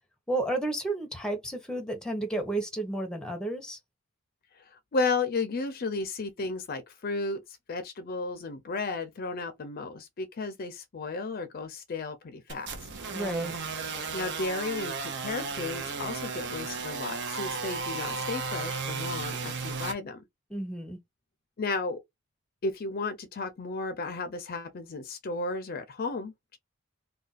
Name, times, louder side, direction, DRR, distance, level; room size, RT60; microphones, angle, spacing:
voice 1, 0.3-3.8 13.1-13.5 20.5-21.0, right 2 dB, 5° left, 0.7 m, -32 dB
voice 2, 4.5-12.8 14.1-20.2 21.6-22.0 22.6-26.6, left 3 dB, 45° left, 0.5 m, -34 dB
sound 1, 12.5-19.9, right 4 dB, 55° right, 0.7 m, -34 dB
2.4 x 2.3 x 3.9 m
head